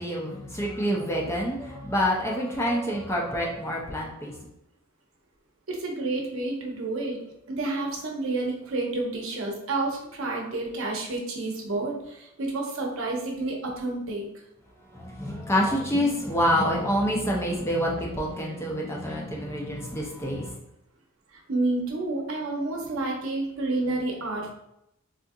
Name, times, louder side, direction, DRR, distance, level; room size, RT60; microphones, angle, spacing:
voice 1, 0.0-4.4 14.9-20.6, equal, 10° left, -3 dB, 0.4 m, -27 dB
voice 2, 5.7-7.2 7.5-14.2 21.3-24.5, right 2 dB, 65° right, 0 dB, 0.7 m, -30 dB
3.7 x 2.4 x 2.6 m, 0.82 s
head